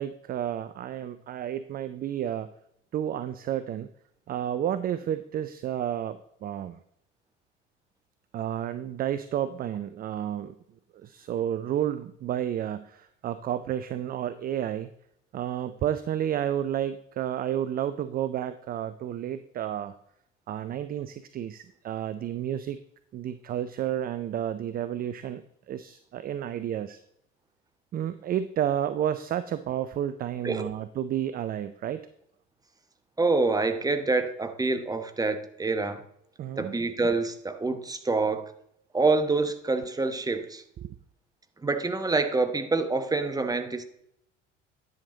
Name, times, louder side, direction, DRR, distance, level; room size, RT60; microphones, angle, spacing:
voice 1, 0.0-2.5 2.9-3.9 4.3-6.8 8.3-10.5 10.9-14.9 15.3-19.9 20.5-22.8 23.1-27.0 27.9-32.1 36.4-36.8 40.8-41.0, right 10 dB, 25° right, 0.4 m, -31 dB
voice 2, 33.2-36.0 36.6-38.5 38.9-40.6 41.6-43.8, right 3 dB, 10° right, 1.0 m, -26 dB
10.5 x 6.5 x 3.9 m
figure-of-eight pair, 65°, 37 cm